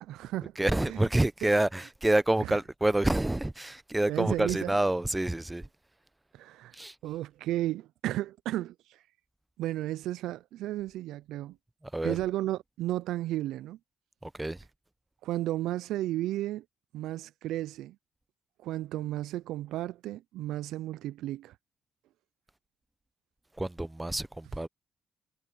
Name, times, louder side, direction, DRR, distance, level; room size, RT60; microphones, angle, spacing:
voice 1, 0.0-0.5 0.8-1.1 1.4-1.5 2.4-2.6 4.1-4.8 6.3-6.8 7.0-9.0 9.6-11.6 12.0-13.8 15.2-16.6 16.9-18.0 18.6-21.6, right 15 dB, 90° right, 0.3 m, -33 dB
voice 2, 0.6-5.7 6.7-6.9 11.9-12.2 14.2-14.6 23.6-24.7, right 1 dB, 10° right, 0.6 m, -28 dB
cardioid pair, 90°, 0 cm